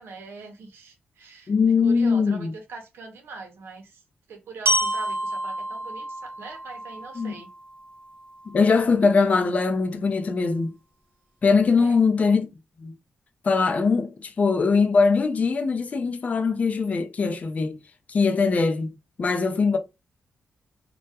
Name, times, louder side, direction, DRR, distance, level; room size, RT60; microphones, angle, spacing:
voice 1, 0.0-4.0 4.3-7.5 11.8-12.0, right 4 dB, 85° right, 0.6 m, -42 dB
voice 2, 1.5-2.5 7.2-7.3 8.5-10.7 11.4-12.5 12.8-12.9 13.4-17.8 18.1-18.9 19.2-19.8, left 4 dB, 40° left, 0.4 m, -21 dB
Glockenspiel, 4.7-8.6, right 1 dB, 65° right, 0.9 m, -29 dB
2.2 x 2.1 x 2.8 m
cardioid pair, 105°, 4 cm